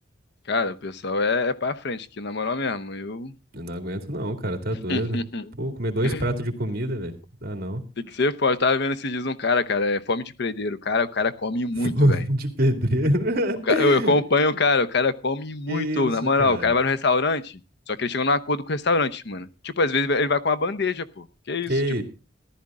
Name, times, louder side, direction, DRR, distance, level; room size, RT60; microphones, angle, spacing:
voice 1, 0.5-3.3 4.9-5.4 6.0-6.2 8.0-12.2 13.7-17.6 17.9-21.7, left 3 dB, 60° left, 14 dB, 0.8 m, -24 dB
voice 2, 3.5-5.2 5.5-7.1 7.4-7.8 11.7-14.2 15.7-16.7 21.7-22.0, equal, 50° right, 5 dB, 2.5 m, -25 dB
14.5 x 12.0 x 3.7 m, 0.31 s
head